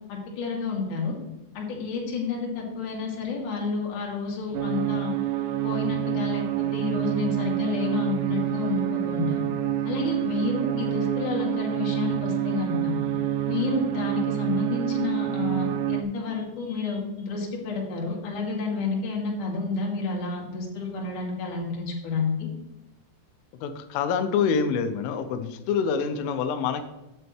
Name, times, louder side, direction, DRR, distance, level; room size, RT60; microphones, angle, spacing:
voice 1, 0.1-1.1 1.5-5.1 5.6-9.4 9.8-13.0 13.5-22.5, left 4 dB, 45° left, -2 dB, 3.4 m, -30 dB
sound 1, 4.5-16.0, right 13 dB, 90° right, 3.5 m, -27 dB
voice 2, 23.6-26.8, left 6 dB, 85° left, 9 dB, 3.2 m, -26 dB
13.0 x 9.3 x 3.2 m, 0.97 s
omnidirectional pair, 6.0 m